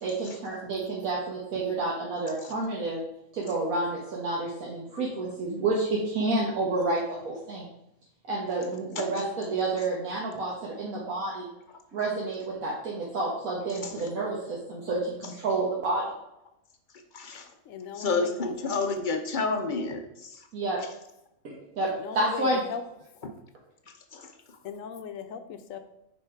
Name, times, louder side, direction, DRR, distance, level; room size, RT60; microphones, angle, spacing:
voice 1, 0.0-3.0 3.3-7.7 8.3-11.5 11.9-16.1 20.5-20.8 21.4-21.9 22.1-22.6, right 2 dB, 75° right, -4 dB, 1.6 m, -29 dB
voice 2, 17.1-17.5 18.0-20.5 23.9-24.6, left 4 dB, 50° left, 6 dB, 0.6 m, -30 dB
voice 3, 17.6-18.6 21.8-22.8 24.6-25.8, left 7 dB, 70° left, 8 dB, 1.0 m, -38 dB
5.6 x 5.1 x 4.5 m, 0.84 s
omnidirectional pair, 1.5 m